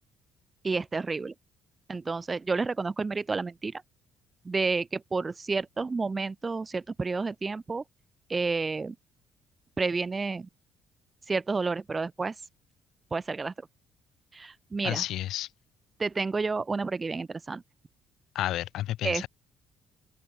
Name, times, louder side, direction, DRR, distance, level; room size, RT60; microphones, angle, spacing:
voice 1, 0.6-1.3 1.9-3.8 4.4-7.8 8.3-8.9 9.8-10.5 11.3-12.3 13.1-13.5 14.3-15.0 16.0-17.6 19.0-19.2, right 4 dB, 20° right, 1.2 m, -30 dB
voice 2, 14.8-15.5 18.3-19.3, left 13 dB, 70° left, 7.2 m, -31 dB
open air
cardioid pair, 130°, 0 cm